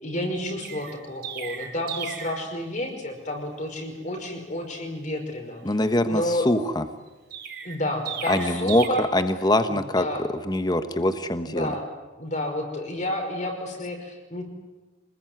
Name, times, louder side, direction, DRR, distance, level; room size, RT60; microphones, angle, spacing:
voice 1, 0.0-5.7 6.1-6.5 7.6-9.1 9.7-10.3 11.5-11.9 12.2-14.4, left 1 dB, 40° left, 4 dB, 5.3 m, -30 dB
Chirp tweet, 0.6-2.4 7.3-8.9, right 8 dB, 50° right, 6.5 m, -35 dB
voice 2, 5.6-6.8 8.3-8.8 9.1-10.1 10.5-11.7, left 1 dB, 20° left, 9 dB, 1.1 m, -23 dB
26.0 x 20.5 x 9.4 m, 1.2 s
head